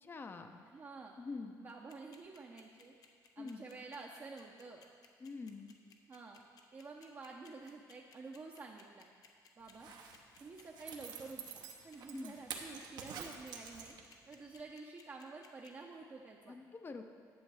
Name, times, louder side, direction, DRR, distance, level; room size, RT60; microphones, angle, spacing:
voice 1, 0.0-0.6 1.2-1.6 3.4-3.7 5.2-5.8 12.1-12.4 16.5-17.0, left 4 dB, 30° left, 6 dB, 0.7 m, -46 dB
voice 2, 0.6-1.2 1.5-2.9 3.4-4.8 6.1-6.4 6.7-9.1 9.6-9.9 10.4-14.0 14.3-16.6, right 3 dB, 35° right, -1 dB, 0.7 m, -50 dB
sound 1, 1.7-15.7, left 6 dB, 60° left, 0.9 m, -61 dB
Zipper (clothing), 9.7-14.3 14.6-14.7, right 6 dB, 70° right, 1.0 m, -48 dB
10.5 x 7.0 x 4.8 m, 2.1 s
cardioid pair, 110°, 7 cm